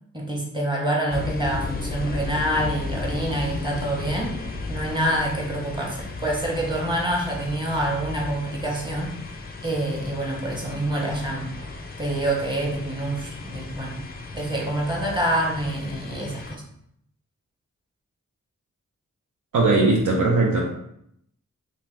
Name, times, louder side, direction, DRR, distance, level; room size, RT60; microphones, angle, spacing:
voice 1, 0.1-9.1 9.6-11.5 12.0-14.0 14.3-16.6, right 1 dB, 15° right, -2 dB, 0.9 m, -27 dB
sound 1, 1.1-16.6, left 3 dB, 30° left, 0.4 m, -34 dB
voice 2, 19.5-20.8, right 3 dB, 75° right, -2 dB, 0.5 m, -19 dB
2.8 x 2.1 x 3.3 m, 0.73 s
wide cardioid pair, 60°, 31 cm